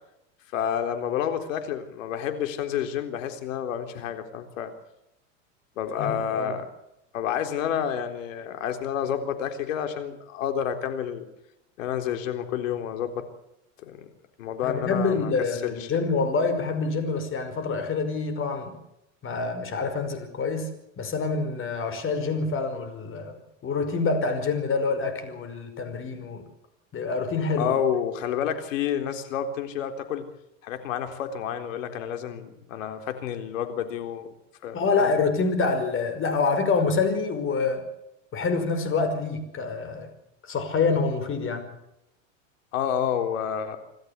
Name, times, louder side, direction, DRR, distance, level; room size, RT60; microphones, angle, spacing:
voice 1, 0.5-4.7 5.8-6.6 7.1-11.2 11.8-13.3 13.8-14.1 14.4-15.9 27.6-30.3 30.6-34.3 34.6-35.1 42.7-43.8, left 9 dB, 75° left, 7 dB, 3.8 m, -29 dB
voice 2, 6.0-6.5 14.6-18.7 19.2-26.5 26.9-27.7 34.7-37.8 38.3-40.1 40.4-41.7, left 4 dB, 30° left, 8 dB, 5.4 m, -26 dB
27.0 x 13.5 x 8.3 m, 0.84 s
hypercardioid pair, 110°, 39 cm